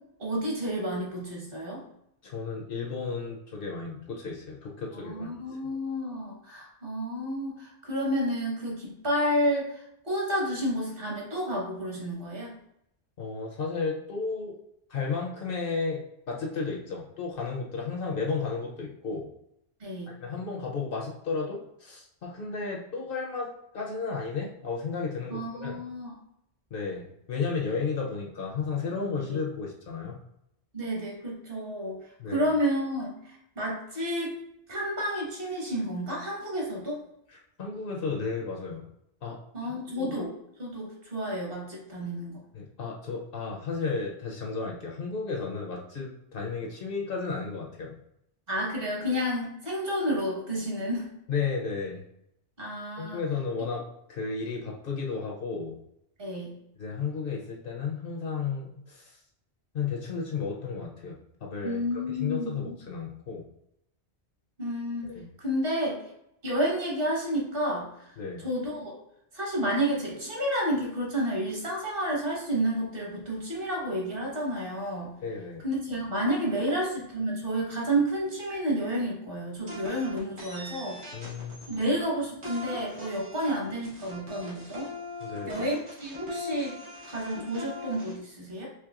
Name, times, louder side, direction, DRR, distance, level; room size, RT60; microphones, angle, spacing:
voice 1, 0.2-1.8 5.1-12.5 19.8-20.1 25.3-26.1 30.7-32.0 32.3-34.3 34.7-37.0 39.5-40.3 40.6-42.4 48.5-51.1 52.6-53.2 56.2-56.5 61.6-62.7 64.6-65.1 65.4-66.0 66.4-68.9 69.3-75.1 75.6-81.2 81.7-84.9 85.5-86.8 87.0-88.7, equal, 55° right, -3 dB, 1.5 m, -30 dB
voice 2, 2.2-5.3 13.2-14.6 14.9-19.3 20.1-25.8 26.7-30.2 32.2-32.5 37.3-38.9 39.2-40.2 42.5-47.9 51.3-52.0 53.0-55.8 56.8-59.2 59.7-63.5 65.0-65.3 68.2-68.4 75.2-75.6 81.1-81.8 85.2-85.6, left 5 dB, 60° left, 0 dB, 0.8 m, -33 dB
sound 1, 79.7-82.0 82.4-88.1, left 2 dB, 90° right, 1.6 m, -41 dB
4.6 x 3.2 x 2.4 m, 0.78 s
omnidirectional pair, 1.1 m